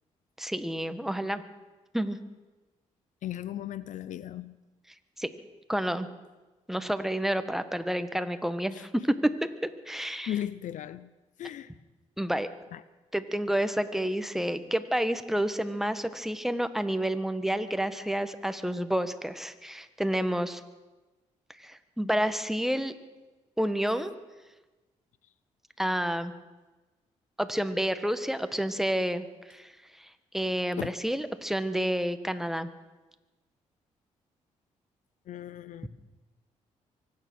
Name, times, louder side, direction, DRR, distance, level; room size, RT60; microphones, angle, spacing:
voice 1, 0.4-1.4 1.9-2.2 5.2-5.3 5.7-6.1 6.7-9.3 9.6-10.3 12.2-12.5 13.1-20.6 21.6-22.9 23.6-24.1 25.8-26.3 27.4-29.7 30.0-32.7, equal, 5° right, 10 dB, 1.3 m, -29 dB
voice 2, 3.2-4.6 8.7-8.8 10.0-11.1 11.4-11.7 12.7-12.8 30.7-30.9 35.3-35.9, left 11 dB, 70° left, 17 dB, 0.5 m, -36 dB
24.0 x 9.6 x 6.2 m, 1.2 s
supercardioid pair, 60°, 13 cm